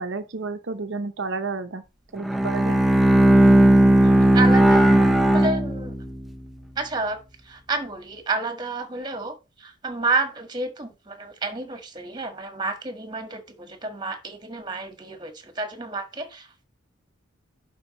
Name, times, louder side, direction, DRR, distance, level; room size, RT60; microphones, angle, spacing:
voice 1, 0.0-1.8 2.1-2.8, right 3 dB, 60° right, 0.8 m, -31 dB
Bowed string instrument, 2.2-6.3, right 1 dB, ahead, 0.6 m, -16 dB
voice 2, 4.0-5.9 6.8-16.6, right 3 dB, 20° right, 1.5 m, -30 dB
11.0 x 4.6 x 3.1 m
head